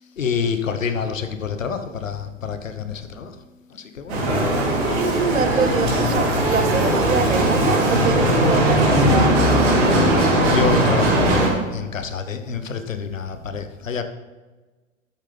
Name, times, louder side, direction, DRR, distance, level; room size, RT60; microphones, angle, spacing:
voice 1, 0.0-4.2 4.8-5.1 10.1-14.0, left 6 dB, 75° left, 9 dB, 1.1 m, -28 dB
Bicycle, 4.1-11.5, right 1 dB, 55° right, 3.2 m, -18 dB
voice 2, 5.0-9.3, right 6 dB, 80° right, 12 dB, 0.8 m, -25 dB
12.0 x 8.3 x 3.4 m, 1.3 s
figure-of-eight pair, 100°, 39 cm